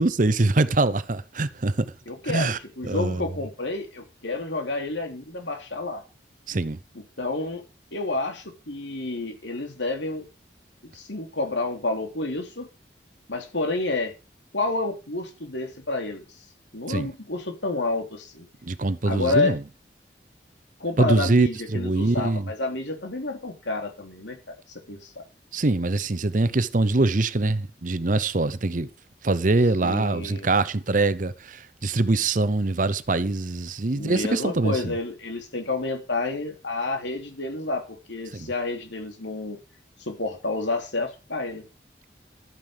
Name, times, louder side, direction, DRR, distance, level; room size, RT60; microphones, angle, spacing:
voice 1, 0.0-1.8 2.2-2.6 2.8-3.2 6.5-6.8 16.9-17.1 18.6-19.6 21.0-22.5 25.5-28.9 29.2-34.9 38.3-38.5, right 2 dB, 45° right, 0.8 m, -23 dB
voice 2, 2.1-6.0 7.2-7.6 7.9-10.3 10.8-12.7 13.3-14.1 14.5-16.3 16.7-18.5 19.0-19.6 20.8-25.2 29.8-30.5 33.9-39.6 40.0-41.6, left 2 dB, 90° left, 3.1 m, -29 dB
12.5 x 9.4 x 5.1 m
head